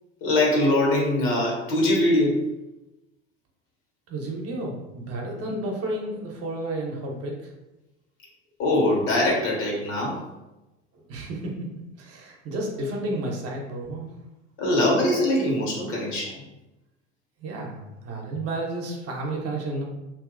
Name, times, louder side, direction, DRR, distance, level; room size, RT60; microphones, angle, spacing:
voice 1, 0.2-2.4 8.6-10.2 14.6-16.4, left 1 dB, 65° left, -3 dB, 1.2 m, -22 dB
voice 2, 4.1-7.5 10.9-14.1 17.4-19.9, right 1 dB, 45° right, 0 dB, 0.8 m, -32 dB
2.8 x 2.7 x 2.4 m, 0.98 s
hypercardioid pair, 70°, 34 cm